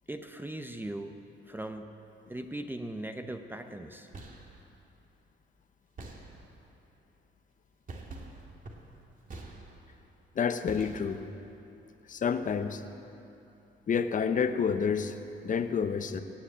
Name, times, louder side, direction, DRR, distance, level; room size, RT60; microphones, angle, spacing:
voice 1, 0.1-1.2 1.5-1.9 2.3-4.1, right 1 dB, 10° right, 6 dB, 0.7 m, -39 dB
sound 1, 3.9-4.6 6.0-6.7 7.9-10.0 10.7-11.4, right 2 dB, 40° right, 2.1 m, -46 dB
voice 2, 10.4-11.2 12.1-12.8 13.9-15.1 15.4-16.2, left 6 dB, 40° left, 9 dB, 0.8 m, -29 dB
17.0 x 7.7 x 8.5 m, 2.8 s
cardioid pair, 90°, 20 cm